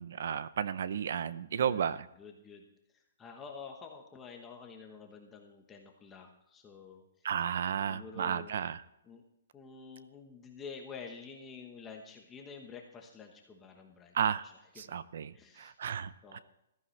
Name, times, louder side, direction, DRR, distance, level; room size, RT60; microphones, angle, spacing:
voice 1, 0.0-2.1 7.2-8.8 14.1-14.5 14.8-16.4, right 8 dB, 55° right, 16 dB, 0.6 m, -33 dB
voice 2, 1.5-1.9 2.2-7.0 7.9-8.5 9.1-9.2 9.5-14.2 14.4-14.9 15.3-15.8 16.2-16.4, left 5 dB, 10° left, 2 dB, 1.1 m, -49 dB
15.5 x 14.5 x 3.2 m, 0.84 s
hypercardioid pair, 175°, 0 cm